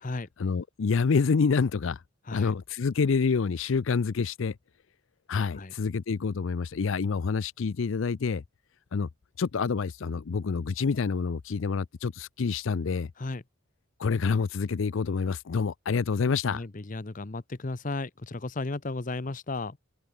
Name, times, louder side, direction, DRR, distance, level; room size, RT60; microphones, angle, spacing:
voice 1, 0.4-2.0 2.3-4.6 5.3-8.4 8.9-9.1 9.4-13.1 14.0-16.6, left 5 dB, 65° left, 0.5 m, -27 dB
voice 2, 16.5-19.8, left 2 dB, 40° left, 0.8 m, -34 dB
open air
head